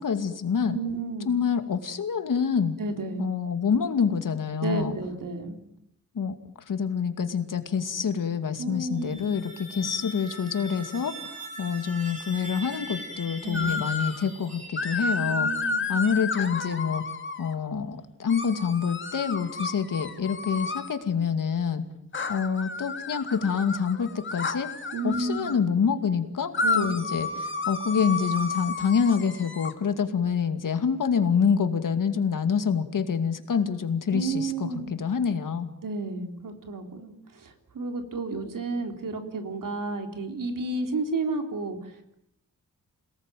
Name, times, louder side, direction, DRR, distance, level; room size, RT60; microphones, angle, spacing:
voice 1, 0.0-0.8 1.3-2.7 3.2-4.9 6.1-6.3 6.7-15.5 15.9-17.0 17.4-21.8 22.3-24.7 25.0-34.7 35.0-35.7, left 6 dB, 75° left, 8 dB, 2.5 m, -26 dB
voice 2, 0.7-1.3 2.8-3.3 4.6-5.6 8.6-9.2 9.7-9.9 13.4-13.8 15.2-15.8 24.9-25.5 26.6-26.9 34.1-34.9 35.8-42.1, right 3 dB, 75° right, 5 dB, 3.8 m, -32 dB
sound 1, 8.9-15.5, equal, 20° right, 6.8 m, -41 dB
sound 2, 13.5-14.2 14.8-17.5 18.3-20.9 22.1-25.6 26.5-29.7, left 4 dB, 35° left, 2.1 m, -31 dB
28.0 x 19.0 x 9.3 m, 0.78 s
wide cardioid pair, 175°, 32 cm